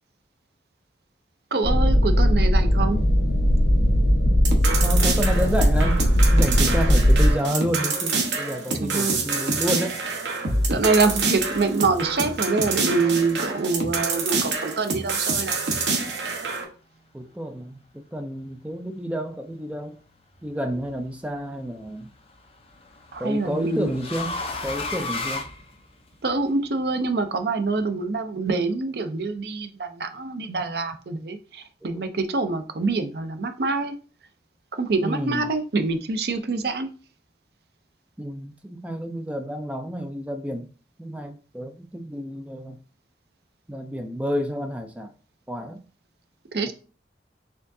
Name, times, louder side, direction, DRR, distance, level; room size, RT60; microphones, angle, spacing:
voice 1, 1.5-3.0 8.8-9.2 10.7-15.6 23.1-23.9 26.2-33.9 34.7-36.9 46.5-46.7, right 3 dB, 60° right, 0.5 m, -25 dB
sound 1, 1.6-7.3, equal, 85° left, 1.1 m, -19 dB
sound 2, 4.3-16.6, right 3 dB, 85° right, 1.0 m, -26 dB
voice 2, 4.8-10.0 17.1-20.0 20.4-22.1 23.2-25.5 31.8-32.1 35.0-35.5 38.2-40.7 41.0-42.8 43.7-45.1 45.5-45.8 46.7-46.8, equal, 5° right, 0.3 m, -30 dB
sound 3, 20.4-20.9 22.3-26.3, left 3 dB, 30° left, 0.6 m, -33 dB
4.4 x 3.6 x 2.6 m
head